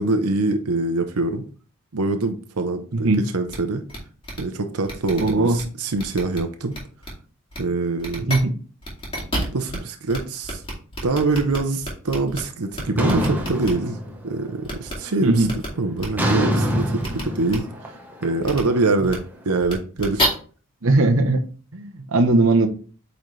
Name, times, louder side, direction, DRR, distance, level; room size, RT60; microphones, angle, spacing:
voice 1, 0.0-1.4 1.9-3.1 3.3-3.8 4.4-6.7 7.6-8.3 9.5-10.6 11.0-14.0 14.2-15.5 15.8-18.0 18.2-20.3, right 3 dB, 90° right, 0.8 m, -24 dB
sound 1, 3.5-3.6 3.9-4.0 4.2-4.4 4.8-5.6 6.0-6.4 6.7-7.1 7.5-7.6 8.0-8.4 8.8-9.8 10.1-10.2 10.4-12.4 12.7-13.7 14.6-14.9 15.4-15.7 16.0-16.1 17.0-17.2 17.5-17.6 18.4-18.6 19.0-19.2 19.6-20.3, left 1 dB, 25° left, 2.4 m, -29 dB
voice 2, 5.2-5.6 8.2-8.5 9.2-9.3 15.2-15.5 20.8-21.4 21.7-22.7, right 2 dB, 60° right, 0.9 m, -19 dB
sound 2, 13.0-14.5 14.8-15.3 16.2-19.2, equal, 10° right, 1.0 m, -25 dB
8.7 x 4.0 x 3.2 m
head